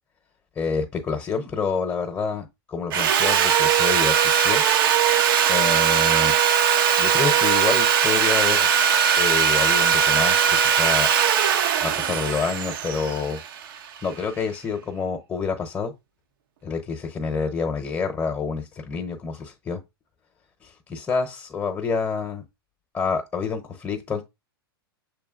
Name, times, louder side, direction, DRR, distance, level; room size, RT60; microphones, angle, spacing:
voice 1, 0.6-4.6 5.5-6.4 7.0-11.1 11.8-13.4 14.0-15.9 16.6-19.8 20.6-22.4 22.9-24.2, left 5 dB, 20° left, 0.8 m, -28 dB
Sawing, 2.9-14.0, right 8 dB, 65° right, 0.7 m, -20 dB
6.6 x 3.2 x 2.4 m
hypercardioid pair, 100°, 13 cm